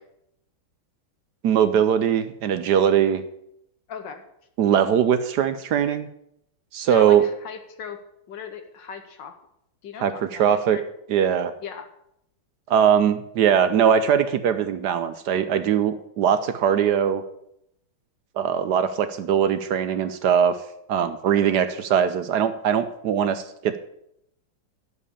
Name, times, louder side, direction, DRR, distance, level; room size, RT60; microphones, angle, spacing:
voice 1, 1.4-3.2 4.6-6.1 6.7-7.2 10.0-10.8 11.1-11.5 12.7-17.2 18.4-20.6 20.9-23.8, right 8 dB, 70° right, 11 dB, 1.0 m, -21 dB
voice 2, 3.9-4.3 6.9-9.4 9.8-10.8 11.6-11.9 12.7-12.9 13.6-13.8 21.3-21.5, left 7 dB, 65° left, 8 dB, 1.5 m, -39 dB
11.0 x 5.4 x 8.4 m, 0.78 s
omnidirectional pair, 2.2 m